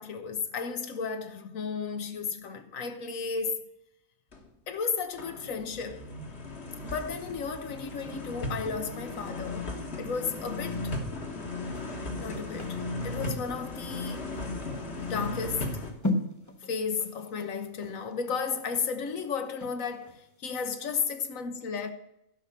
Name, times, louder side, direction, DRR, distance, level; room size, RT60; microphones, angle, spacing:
voice 1, 0.0-3.7 4.7-6.1 6.8-10.9 12.2-14.3 15.0-15.8 16.7-21.9, left 5 dB, 80° left, 1.4 m, -34 dB
sound 1, 4.3-4.5 4.9-15.9, left 2 dB, 55° left, 1.8 m, -36 dB
sound 2, 11.7-20.2 20.6-20.7, left 1 dB, 15° left, 1.2 m, -38 dB
11.5 x 5.9 x 6.8 m
omnidirectional pair, 1.4 m